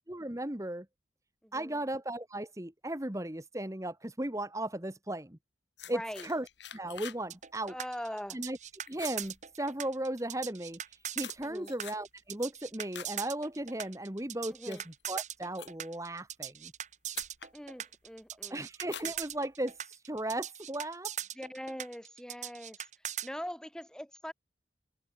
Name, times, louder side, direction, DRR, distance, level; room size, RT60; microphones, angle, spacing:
voice 1, 0.1-0.9 1.5-5.4 5.9-6.5 6.7-7.7 8.3-8.6 8.9-14.8 15.1-16.7 18.5-21.1, right 1 dB, 15° right, 1.5 m, -36 dB
voice 2, 1.4-1.8 5.9-6.3 7.7-8.4 11.4-11.7 14.5-14.8 17.5-18.6 21.3-22.8 23.2-24.3, equal, 5° left, 1.9 m, -42 dB
sound 1, 5.8-7.3 7.6-7.9 8.3-8.6 8.9-10.0 10.7-13.2 13.6-13.9 14.4-16.0 16.8-16.9 17.1-17.6 18.0-18.4 18.8-19.8, left 9 dB, 75° left, 3.1 m, -48 dB
sound 2, 7.3-23.3, right 10 dB, 40° right, 1.8 m, -40 dB
head